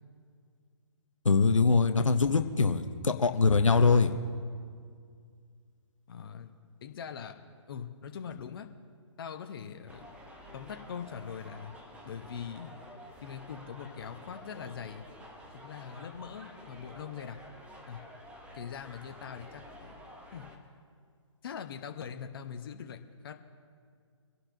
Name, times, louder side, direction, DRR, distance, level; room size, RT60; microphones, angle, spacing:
voice 1, 1.2-4.1, left 4 dB, 85° left, 7 dB, 0.9 m, -23 dB
voice 2, 6.1-7.3 7.7-8.7 9.2-10.0 10.5-11.7 12.0-12.7 13.2-15.0 15.5-17.4 17.9-18.0 18.5-20.0 20.3-20.5 21.4-23.3, left 7 dB, 45° left, 6 dB, 1.0 m, -42 dB
sound 1, 9.9-20.6, equal, 5° right, 1.1 m, -50 dB
25.5 x 11.5 x 2.7 m, 2.1 s
figure-of-eight pair, 140°, 16 cm